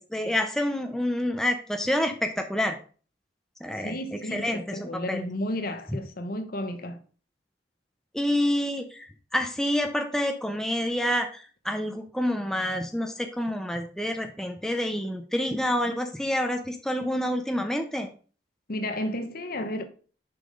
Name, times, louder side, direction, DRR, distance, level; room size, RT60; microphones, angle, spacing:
voice 1, 0.0-2.8 3.6-4.0 4.3-5.2 8.1-9.1 9.3-18.1, left 1 dB, 5° left, 0.7 m, -28 dB
voice 2, 3.8-7.0 18.7-19.8, left 1 dB, 55° left, 0.9 m, -32 dB
6.7 x 5.7 x 3.9 m
head